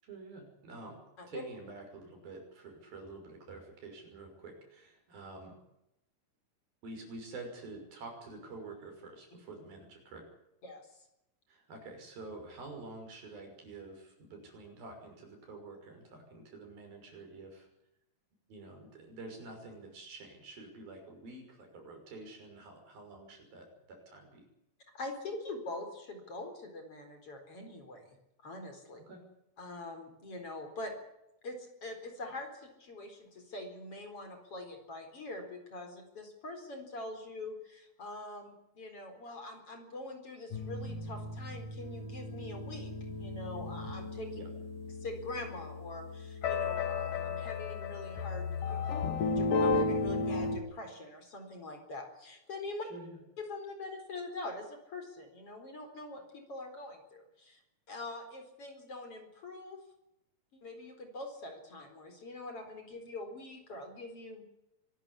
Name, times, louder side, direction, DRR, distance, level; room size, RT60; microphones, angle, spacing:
voice 1, 0.0-5.6 6.8-10.2 11.5-17.7 18.5-24.4 29.1-29.2 44.3-44.5 52.9-53.2, right 3 dB, 80° right, 3 dB, 7.8 m, -48 dB
voice 2, 24.9-28.2 28.4-29.0 29.6-30.9 31.4-42.9 43.2-44.3 45.0-52.9 53.4-57.6 57.9-59.8 60.5-64.4, left 2 dB, 40° left, 5 dB, 5.1 m, -44 dB
sound 1, 40.5-50.6, left 3 dB, 65° left, 3.9 m, -34 dB
24.5 x 14.0 x 9.8 m, 0.85 s
omnidirectional pair, 4.1 m